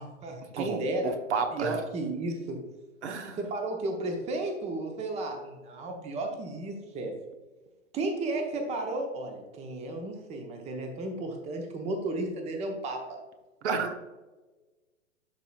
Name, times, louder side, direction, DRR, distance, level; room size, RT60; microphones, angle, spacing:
voice 1, 0.0-1.1 1.5-2.6 3.4-7.1 7.9-13.2, right 2 dB, 15° right, 4 dB, 0.8 m, -33 dB
voice 2, 0.5-1.8 3.0-3.4 13.6-14.0, right 5 dB, 60° right, 5 dB, 1.1 m, -31 dB
11.5 x 4.0 x 2.4 m, 1.2 s
figure-of-eight pair, 105°, 38 cm